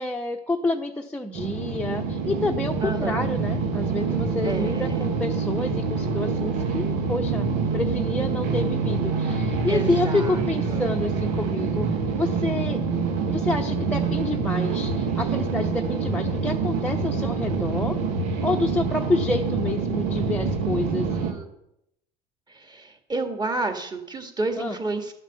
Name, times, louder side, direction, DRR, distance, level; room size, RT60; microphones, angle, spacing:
voice 1, 0.0-7.5 7.7-11.9 12.2-12.8 13.3-18.0 18.4-21.1 24.6-24.7, left 2 dB, 5° left, 1 dB, 0.8 m, -28 dB
sound 1, 1.3-21.3, right 4 dB, 85° right, 2.0 m, -26 dB
voice 2, 2.8-3.2 4.4-5.0 9.7-10.8 21.1-21.5 22.5-25.1, right 3 dB, 20° right, 6 dB, 1.9 m, -31 dB
11.5 x 7.3 x 6.9 m, 0.80 s
supercardioid pair, 105°, 19 cm